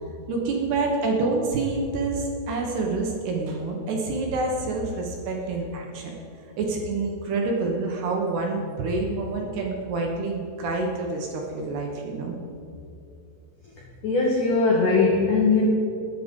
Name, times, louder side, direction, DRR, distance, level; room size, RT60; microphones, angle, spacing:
voice 1, 0.3-6.1 6.6-12.3, right 3 dB, 65° right, 0 dB, 3.0 m, -27 dB
voice 2, 14.0-15.7, left 3 dB, 70° left, -2 dB, 2.0 m, -20 dB
22.0 x 8.2 x 5.4 m, 2.6 s
omnidirectional pair, 5.7 m